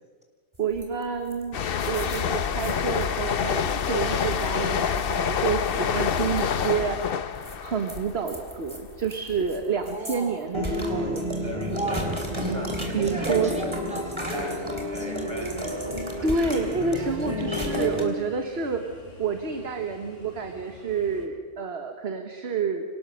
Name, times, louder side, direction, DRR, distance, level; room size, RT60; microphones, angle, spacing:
voice 1, 0.6-1.6 1.9-7.0 7.2-7.4 7.6-12.0 12.9-13.5 16.2-18.8 19.2-22.8, right 5 dB, 55° right, 5 dB, 1.6 m, -29 dB
sound 1, 0.8-1.0 1.3-1.4 1.7-3.1 3.6-3.9 4.3-4.5 4.9-5.7 6.4-6.5 7.4-9.6 9.8-10.2 10.5-18.0, equal, 20° right, 3.3 m, -31 dB
sound 2, 1.5-9.0 9.3-9.6, left 7 dB, 55° left, 0.9 m, -27 dB
voice 2, 9.8-10.4 11.3-12.3 13.0-15.9 17.5-17.7, right 1 dB, 5° right, 2 dB, 4.0 m, -37 dB
sound 3, 15.5-21.3, left 1 dB, 85° left, 6.1 m, -47 dB
26.0 x 18.0 x 6.5 m, 1.5 s
omnidirectional pair, 1.3 m